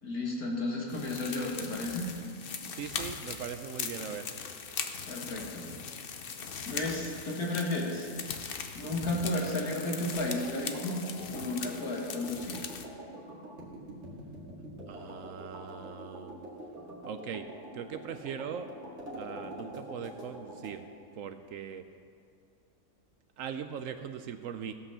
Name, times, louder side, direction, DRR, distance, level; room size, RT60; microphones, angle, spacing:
voice 1, 0.0-2.1 5.1-5.7 6.6-8.1 8.7-12.7, left 2 dB, 75° left, -1 dB, 2.3 m, -33 dB
butterfly wings, 0.9-12.9, left 6 dB, 50° left, 0.7 m, -40 dB
voice 2, 2.7-4.3 14.9-16.5 17.1-17.5 17.7-18.7 19.1-20.9 21.2-21.8 23.4-24.7, right 7 dB, 70° right, 9 dB, 0.9 m, -40 dB
sound 1, 10.0-20.8, right 1 dB, 50° right, 2.3 m, -45 dB
16.5 x 5.7 x 6.8 m, 2.3 s
omnidirectional pair, 1.6 m